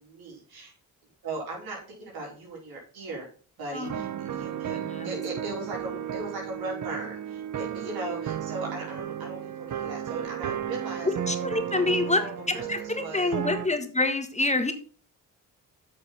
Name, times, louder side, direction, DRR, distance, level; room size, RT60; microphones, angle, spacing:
voice 1, 0.0-0.7 1.2-3.3 3.6-11.1 11.7-13.3, right 2 dB, 90° right, -2 dB, 4.6 m, -38 dB
sound 1, 3.8-13.7, right 10 dB, 60° right, 0.9 m, -34 dB
voice 2, 4.3-5.1 11.3-12.2 12.7-14.7, left 2 dB, 20° left, 8 dB, 1.5 m, -27 dB
8.0 x 6.7 x 5.6 m, 0.43 s
cardioid pair, 70°, 36 cm